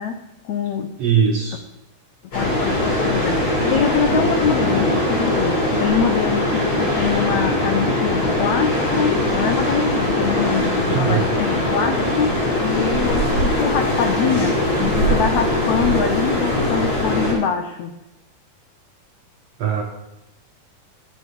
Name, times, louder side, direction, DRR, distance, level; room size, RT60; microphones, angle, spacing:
voice 1, 0.0-1.0 2.3-17.9, left 7 dB, 85° left, 7 dB, 1.6 m, -24 dB
voice 2, 1.0-1.6 10.9-11.3 19.6-19.8, right 7 dB, 65° right, 1 dB, 1.7 m, -20 dB
sound 1, 2.3-17.3, left 1 dB, 45° left, 6.8 m, -21 dB
13.5 x 8.6 x 5.3 m, 0.91 s
omnidirectional pair, 4.3 m